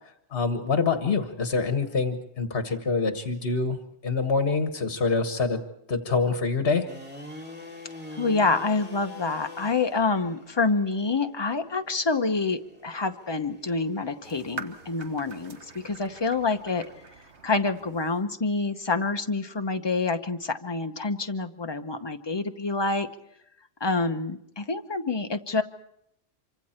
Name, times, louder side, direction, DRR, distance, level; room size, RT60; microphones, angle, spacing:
voice 1, 0.3-3.8 4.0-5.6 5.9-6.9, left 4 dB, 60° left, 7 dB, 1.5 m, -25 dB
sound 1, 6.9-17.1, left 2 dB, 10° right, 2.4 m, -47 dB
voice 2, 8.2-16.8 17.4-23.1 23.8-25.6, left 3 dB, 25° left, 7 dB, 0.9 m, -27 dB
sound 2, 14.2-18.2, right 3 dB, 90° right, 1.6 m, -44 dB
26.0 x 24.5 x 4.4 m, 0.76 s
omnidirectional pair, 1.1 m